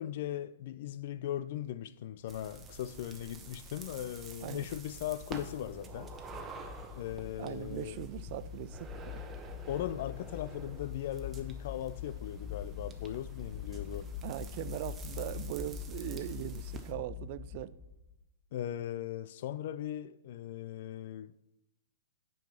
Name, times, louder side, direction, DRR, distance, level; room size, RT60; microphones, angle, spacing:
voice 1, 0.0-6.1 7.0-8.0 9.7-14.1 18.5-21.3, left 11 dB, 55° left, 0.4 m, -38 dB
sound 1, 2.3-16.9, right 4 dB, 20° right, 1.1 m, -49 dB
sound 2, 2.9-18.2, left 9 dB, 10° left, 1.0 m, -45 dB
voice 2, 7.4-9.2 14.2-17.7, right 15 dB, 50° right, 0.4 m, -40 dB
9.1 x 5.4 x 5.8 m
hypercardioid pair, 120°, 0 cm